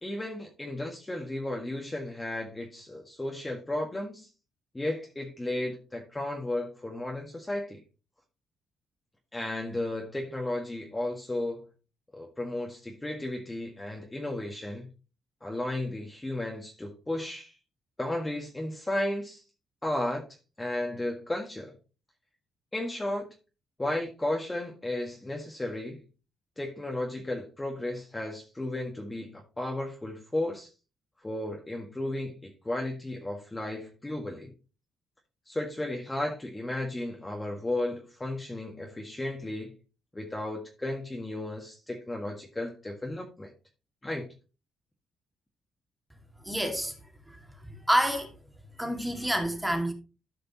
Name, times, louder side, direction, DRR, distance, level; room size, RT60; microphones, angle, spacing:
voice 1, 0.0-4.3 4.7-7.8 9.3-11.7 12.1-14.9 15.4-17.5 18.0-19.4 19.8-20.3 20.6-21.8 22.7-23.3 23.8-26.0 26.6-30.7 31.2-34.5 35.5-39.8 40.1-43.5 44.0-44.3, left 1 dB, 15° left, 1.7 m, -34 dB
voice 2, 46.4-46.9 47.3-48.3 48.8-49.9, equal, 5° right, 2.2 m, -28 dB
14.0 x 5.1 x 3.0 m
cardioid pair, 90°, 0 cm